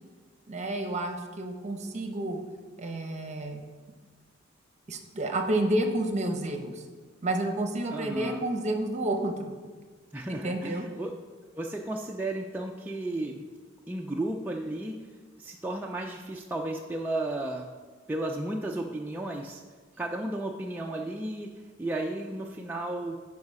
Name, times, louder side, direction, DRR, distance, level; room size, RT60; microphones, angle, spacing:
voice 1, 0.5-2.4 2.8-3.6 4.9-6.8 7.2-9.5 10.3-10.8, right 1 dB, 35° right, 4 dB, 0.9 m, -30 dB
voice 2, 7.9-8.5 10.1-11.2 11.5-13.5 13.9-15.0 15.4-17.7 18.1-19.6 20.0-23.2, right 1 dB, 10° right, -1 dB, 0.4 m, -34 dB
9.6 x 4.8 x 4.8 m, 1.4 s
head